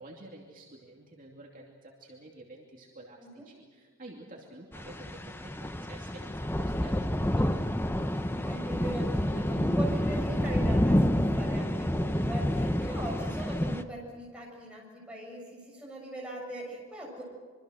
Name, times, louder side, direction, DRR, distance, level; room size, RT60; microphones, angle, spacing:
voice 1, 0.0-7.7, right 2 dB, 40° right, -2 dB, 2.7 m, -50 dB
sound 1, 4.7-13.8, equal, 10° left, 0.9 m, -28 dB
voice 2, 8.4-17.2, right 1 dB, 5° right, -2 dB, 7.1 m, -40 dB
sound 2, 12.0-13.2, equal, 30° left, 3.3 m, -53 dB
25.5 x 24.5 x 6.5 m, 1.5 s
head